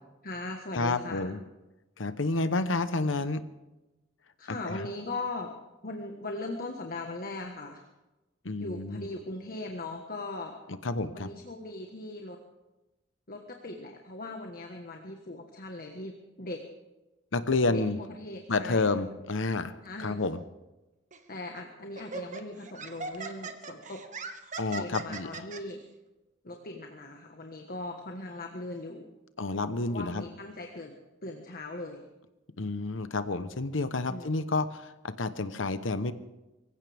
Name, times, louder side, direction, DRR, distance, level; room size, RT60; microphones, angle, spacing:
voice 1, 0.2-1.3 4.4-5.5 5.8-7.8 8.6-10.6 11.1-12.4 13.3-16.6 17.7-18.9 19.8-20.2 21.3-24.0 24.7-25.8 26.4-29.1 29.9-32.0 34.1-34.3, left 2 dB, 50° left, 2 dB, 1.5 m, -39 dB
voice 2, 0.7-1.4 2.0-3.4 4.5-4.9 8.4-9.1 10.7-11.3 17.3-18.0 18.5-20.4 24.6-25.4 29.4-30.2 32.6-36.1, left 3 dB, 80° left, 12 dB, 1.0 m, -30 dB
Laughter, 21.1-21.3 21.9-25.6, right 4 dB, 40° right, 1.3 m, -40 dB
24.0 x 15.5 x 3.5 m, 1.0 s
head